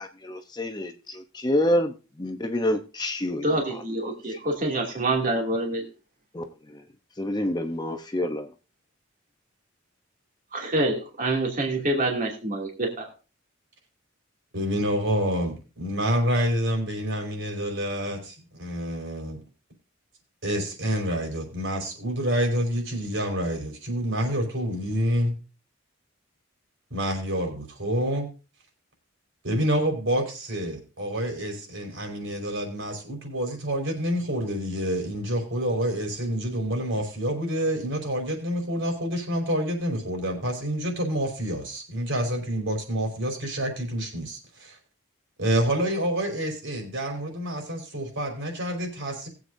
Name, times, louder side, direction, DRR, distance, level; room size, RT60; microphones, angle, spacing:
voice 1, 0.0-1.9 2.2-3.5 6.3-6.4 7.2-8.4, left 1 dB, 20° left, 0.8 m, -27 dB
voice 2, 3.4-5.9 10.7-13.1, right 2 dB, 40° right, 2.5 m, -26 dB
voice 3, 14.5-19.4 20.4-25.4 26.9-28.3 29.4-44.8 45.4-49.3, equal, 65° right, 4.7 m, -28 dB
20.0 x 8.1 x 2.6 m
head